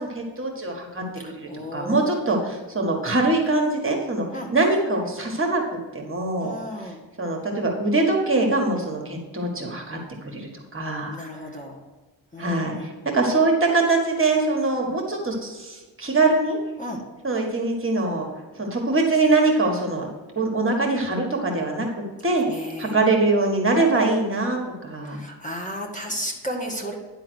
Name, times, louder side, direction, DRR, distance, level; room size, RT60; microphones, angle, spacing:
voice 1, 0.0-1.0 1.3-4.3 4.5-5.6 5.9-6.5 7.2-10.0 10.3-11.1 12.4-16.6 17.2-18.3 18.6-20.1 20.4-21.9 22.2-22.5 22.8-25.2, right 2 dB, 30° right, 1 dB, 1.7 m, -23 dB
voice 2, 1.2-2.6 4.3-4.5 6.4-7.0 11.1-11.8 12.3-12.9 16.8-17.0 22.4-23.0 25.0-27.0, equal, 15° left, 0 dB, 1.8 m, -34 dB
10.5 x 3.8 x 6.4 m, 1.2 s
cardioid pair, 80°, 44 cm